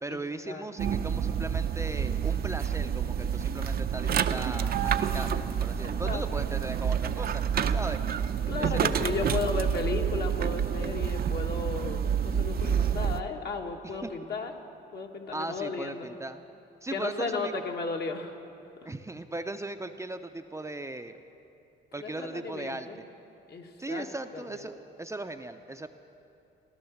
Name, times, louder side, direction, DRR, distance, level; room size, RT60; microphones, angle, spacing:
voice 1, 0.0-7.4 7.7-8.0 8.6-9.1 13.8-14.1 15.3-16.4 16.8-17.5 18.9-21.2 21.9-22.9 23.8-25.9, right 2 dB, 15° right, 7 dB, 0.6 m, -38 dB
sound 1, 0.8-13.2, right 8 dB, 50° right, 0.6 m, -28 dB
voice 2, 5.8-6.2 8.5-14.5 14.9-16.1 16.9-18.4 22.0-23.0 23.5-24.0 24.3-24.6, left 4 dB, 55° left, 2 dB, 1.6 m, -34 dB
16.0 x 11.5 x 7.2 m, 2.8 s
cardioid pair, 90°, 20 cm